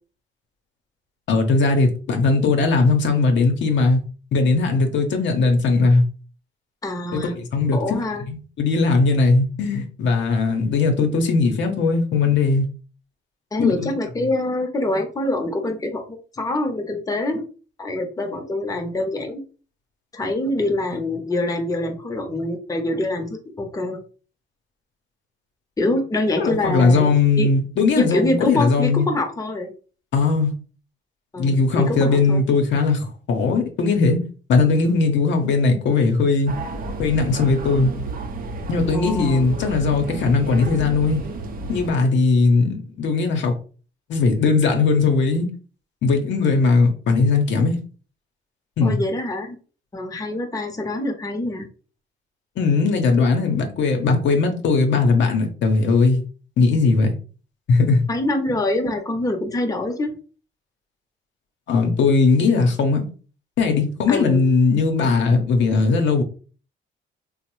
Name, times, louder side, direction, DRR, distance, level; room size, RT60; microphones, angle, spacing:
voice 1, 1.3-4.0 4.3-6.0 7.1-8.0 8.3-12.6 13.6-13.9 26.4-29.1 30.1-30.5 31.4-34.2 34.5-36.5 37.0-37.9 38.7-41.2 41.7-43.6 44.1-45.5 46.0-47.8 48.8-49.0 52.6-56.2 56.6-57.2 57.7-58.1 61.7-63.1 63.6-66.2, left 4 dB, 70° left, 0.7 m, -19 dB
voice 2, 6.8-7.3 7.7-8.2 13.5-16.0 16.3-17.4 17.8-19.4 20.1-24.0 25.8-27.1 27.4-27.5 28.0-29.7 31.3-32.4 38.9-39.4 48.8-49.6 49.9-51.7 58.1-60.1 64.1-64.4, left 1 dB, 15° left, 0.7 m, -25 dB
sound 1, 36.5-41.9, right 3 dB, 50° right, 0.5 m, -31 dB
3.1 x 2.0 x 3.0 m
cardioid pair, 90°, 20 cm